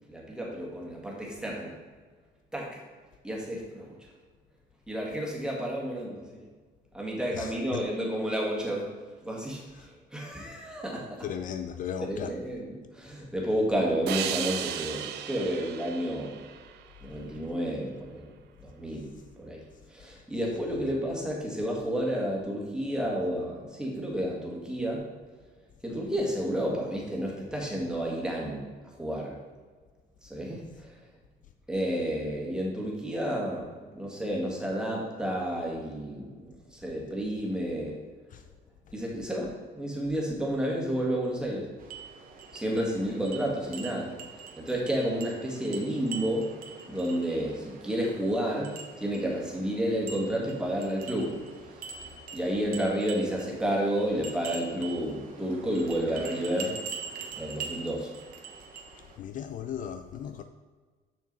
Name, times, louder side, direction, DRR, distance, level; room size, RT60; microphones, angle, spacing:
voice 1, 0.1-1.7 2.5-2.8 3.2-4.0 4.9-6.2 6.9-8.9 9.2-11.2 12.0-16.3 17.0-18.3 18.6-19.1 19.4-19.6 19.9-25.0 25.8-28.6 29.0-29.3 30.2-30.6 31.7-33.7 33.9-38.0 38.9-41.7 42.5-44.1 44.6-46.5 46.9-48.7 49.0-51.4 52.3-56.8 57.4-58.1, equal, 5° right, 2.0 m, -31 dB
voice 2, 7.3-7.8 9.7-9.9 11.2-12.4 20.8-20.9 38.3-38.4 59.2-60.4, left 8 dB, 50° left, 0.4 m, -37 dB
sound 1, 14.1-17.4, right 10 dB, 80° right, 0.6 m, -35 dB
sound 2, 41.8-59.2, right 5 dB, 55° right, 1.2 m, -44 dB
6.4 x 6.3 x 4.1 m
cardioid pair, 110°, 17 cm